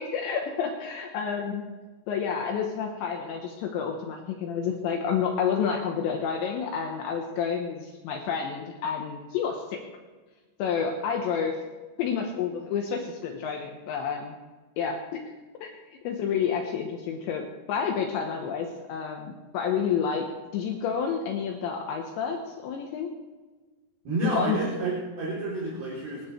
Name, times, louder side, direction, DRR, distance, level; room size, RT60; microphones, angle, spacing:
voice 1, 0.0-1.6 2.1-9.8 10.6-11.6 12.0-14.4 14.8-15.2 15.6-15.7 16.0-20.3 20.5-23.1 24.2-24.6, left 7 dB, 75° left, 2 dB, 3.1 m, -29 dB
voice 2, 24.0-26.3, right 2 dB, 55° right, -7 dB, 5.1 m, -30 dB
25.0 x 12.5 x 3.3 m, 1.3 s
omnidirectional pair, 5.8 m